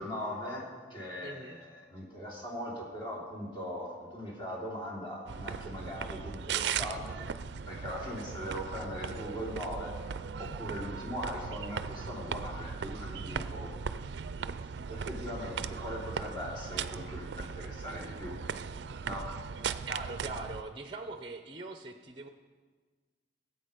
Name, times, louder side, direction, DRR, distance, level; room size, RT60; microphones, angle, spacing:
voice 1, 0.0-7.2 7.6-10.0 10.4-13.7 14.9-18.4 19.0-19.4, equal, 25° left, -3 dB, 3.1 m, -40 dB
voice 2, 1.2-1.6 19.9-22.3, right 2 dB, 25° right, 7 dB, 0.6 m, -41 dB
sound 1, 5.3-20.6, right 6 dB, 65° right, 0.4 m, -38 dB
17.5 x 8.2 x 5.1 m, 1.5 s
head